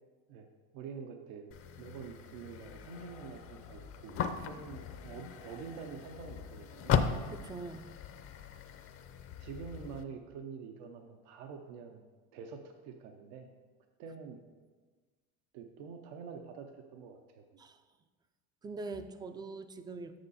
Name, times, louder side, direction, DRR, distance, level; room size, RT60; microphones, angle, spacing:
voice 1, 0.7-7.0 9.4-12.1 12.3-13.5 14.0-14.4 15.5-17.4, right 6 dB, 80° right, 5 dB, 0.8 m, -47 dB
sound 1, 1.5-10.0, left 7 dB, 40° left, 0.6 m, -38 dB
voice 2, 7.3-7.9 17.6-17.8 18.6-20.2, right 3 dB, 15° right, 10 dB, 0.3 m, -43 dB
7.9 x 6.3 x 4.1 m, 1.4 s
cardioid pair, 125°, 34 cm